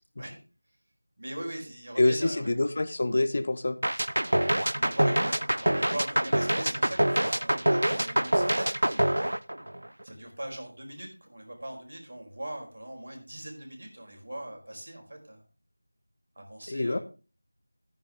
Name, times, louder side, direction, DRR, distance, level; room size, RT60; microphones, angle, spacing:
voice 1, 1.2-2.5 4.2-9.4 10.0-15.4 16.4-17.0, right 1 dB, 60° right, 2 dB, 4.7 m, -40 dB
voice 2, 2.0-3.8 16.7-17.0, left 2 dB, 40° left, 11 dB, 0.8 m, -26 dB
sound 1, 3.8-10.0, right 1 dB, 85° right, 0.6 m, -25 dB
13.0 x 9.6 x 3.6 m, 0.34 s
figure-of-eight pair, 175°, 0 cm